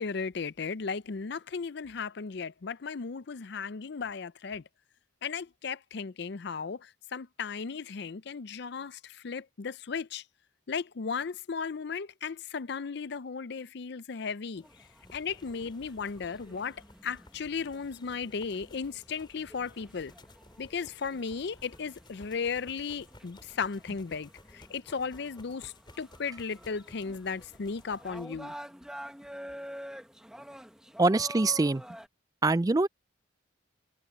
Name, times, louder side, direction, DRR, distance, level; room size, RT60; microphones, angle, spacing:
voice 1, 0.0-4.6 5.2-10.2 10.7-14.7 15.1-20.1 20.6-28.5, left 5 dB, 60° left, 0.5 m, -36 dB
sound 1, 14.6-28.3, left 1 dB, 25° left, 5.0 m, -56 dB
sound 2, 14.6-32.1, equal, 5° right, 1.5 m, -48 dB
voice 2, 31.0-31.8 32.4-32.9, right 3 dB, 20° right, 0.4 m, -24 dB
head